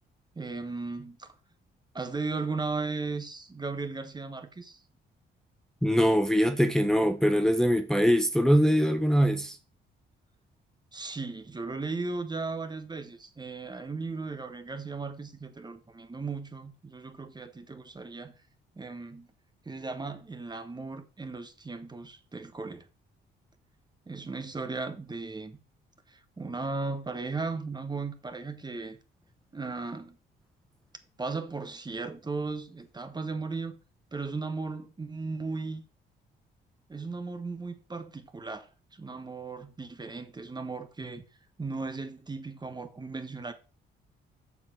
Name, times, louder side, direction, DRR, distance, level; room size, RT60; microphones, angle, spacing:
voice 1, 0.3-1.3 1.9-4.8 10.9-18.3 18.7-19.3 19.6-22.9 24.1-25.6 26.1-29.0 29.5-30.2 31.2-33.8 34.1-35.8 36.9-41.2 41.6-43.5, right 3 dB, 20° right, 1.2 m, -36 dB
voice 2, 5.8-9.6, equal, 5° left, 1.0 m, -23 dB
7.2 x 6.0 x 6.0 m
cardioid pair, 90°, 20 cm